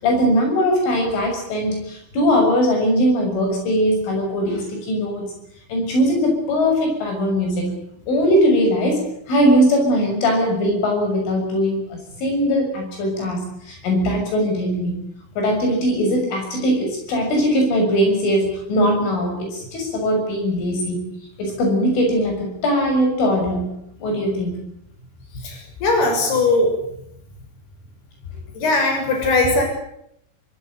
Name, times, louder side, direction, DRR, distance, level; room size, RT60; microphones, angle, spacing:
voice 1, 0.0-5.3 5.7-7.7 8.1-14.9 15.4-21.0 21.4-23.7 24.0-24.5, equal, 85° left, 3 dB, 9.3 m, -20 dB
voice 2, 25.4-26.7 28.5-29.6, left 2 dB, 55° left, 3 dB, 8.5 m, -19 dB
25.0 x 19.0 x 9.3 m, 0.74 s
omnidirectional pair, 5.5 m